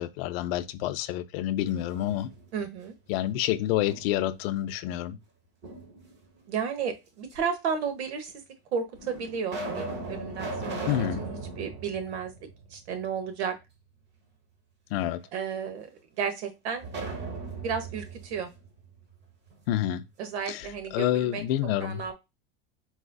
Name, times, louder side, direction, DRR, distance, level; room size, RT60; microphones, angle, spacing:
voice 1, 0.0-2.3 3.1-5.2 10.9-11.2 14.9-15.2 19.7-20.0 20.5-22.0, left 12 dB, 65° left, 0.5 m, -28 dB
sound 1, 1.7-2.7 3.1-4.4 5.6-6.4 7.3-7.4 8.3-8.4 9.0-13.1 13.4-13.5 16.8-19.6, right 3 dB, 35° right, 1.0 m, -38 dB
voice 2, 2.5-2.9 6.5-8.3 8.7-10.9 11.2-12.3 12.7-13.5 15.3-15.9 16.2-16.8 17.5-18.5 20.2-21.4 21.8-22.1, right 6 dB, 90° right, 1.0 m, -33 dB
4.1 x 2.5 x 2.2 m
supercardioid pair, 135°, 32 cm